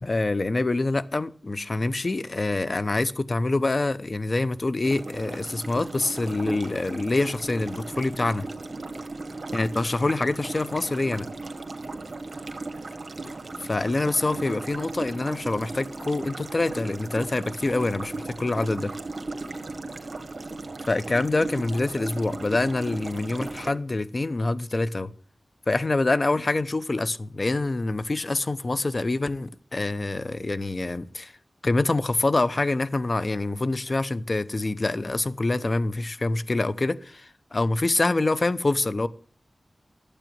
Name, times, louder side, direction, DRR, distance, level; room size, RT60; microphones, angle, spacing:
voice 1, 0.0-8.5 9.5-11.3 13.6-18.9 20.9-25.1 25.7-31.3 31.6-39.1, left 2 dB, 45° left, 0.9 m, -26 dB
sound 1, 4.8-23.7, right 3 dB, 60° right, 1.7 m, -36 dB
12.5 x 8.3 x 7.6 m
wide cardioid pair, 65°, 0 cm